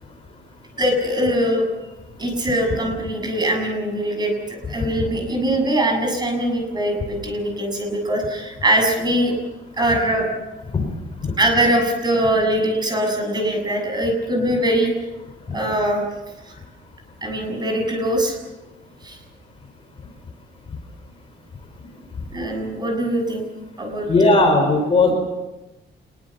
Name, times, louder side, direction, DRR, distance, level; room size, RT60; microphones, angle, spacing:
voice 1, 0.8-1.7 2.2-9.3 9.8-10.3 11.4-14.9 15.5-16.0 16.4-16.6 17.2-18.4 19.0-19.2 22.3-23.4 23.8-24.4 25.1-25.2, right 1 dB, 20° right, 2 dB, 7.3 m, -22 dB
voice 2, 24.1-25.2, left 2 dB, 30° left, 4 dB, 5.3 m, -17 dB
27.5 x 22.0 x 7.3 m, 1.1 s
cardioid pair, 170°, 19 cm